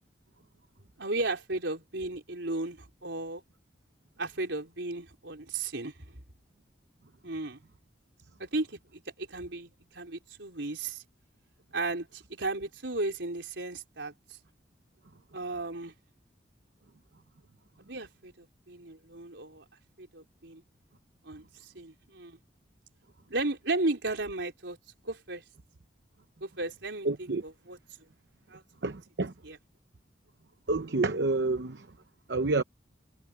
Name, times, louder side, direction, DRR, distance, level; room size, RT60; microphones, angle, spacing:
voice 1, 1.0-3.4 4.2-6.2 7.2-7.6 8.4-11.0 11.7-14.1 15.3-15.9 17.8-19.6 20.0-20.6 21.2-22.4 23.3-24.8 25.0-25.4 26.4-27.8 28.5-28.6 29.4-29.6, right 2 dB, 85° right, 4.2 m, -35 dB
voice 2, 27.0-27.4 28.8-29.3 30.7-31.9 32.3-32.6, right 3 dB, 70° right, 0.8 m, -28 dB
head